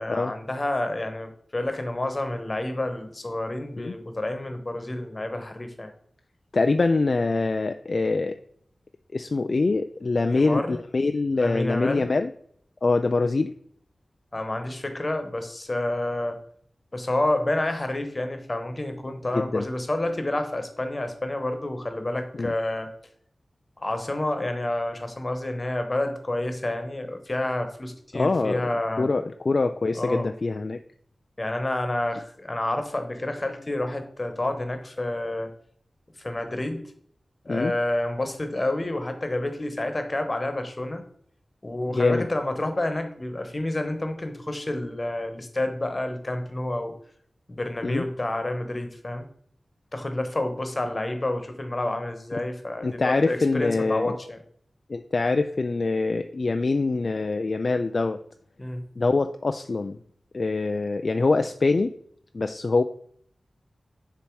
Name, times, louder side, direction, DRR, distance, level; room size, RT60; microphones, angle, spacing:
voice 1, 0.0-5.9 10.3-10.8 11.3-12.0 14.3-16.4 16.9-22.9 23.8-29.1 30.0-30.3 31.4-35.5 36.2-36.9 37.4-41.0 41.6-46.9 47.5-49.3 49.9-54.4 58.6-58.8, left 1 dB, 40° left, 7 dB, 1.1 m, -29 dB
voice 2, 6.5-8.4 9.1-12.3 12.8-13.5 19.3-19.7 22.3-22.5 28.1-28.7 29.0-30.8 37.5-37.7 41.9-42.2 47.8-48.0 52.3-52.4 52.8-54.1 54.9-58.2 59.0-60.0 60.3-61.9 62.3-62.8, left 3 dB, 60° left, 8 dB, 0.3 m, -24 dB
6.9 x 2.9 x 4.7 m, 0.62 s
cardioid pair, 40°, 0 cm